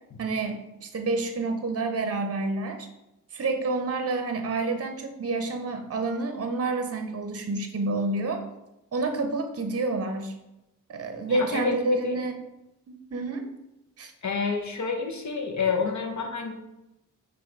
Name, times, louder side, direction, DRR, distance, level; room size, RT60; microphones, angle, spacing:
voice 1, 0.2-2.9 3.3-8.4 8.9-10.3 10.9-12.4 12.9-13.4 14.0-14.1, right 2 dB, 45° right, 6 dB, 0.6 m, -28 dB
voice 2, 11.3-12.2 14.2-16.5, left 5 dB, 60° left, 3 dB, 0.8 m, -29 dB
5.6 x 2.5 x 3.7 m, 0.93 s
cardioid pair, 45°, 32 cm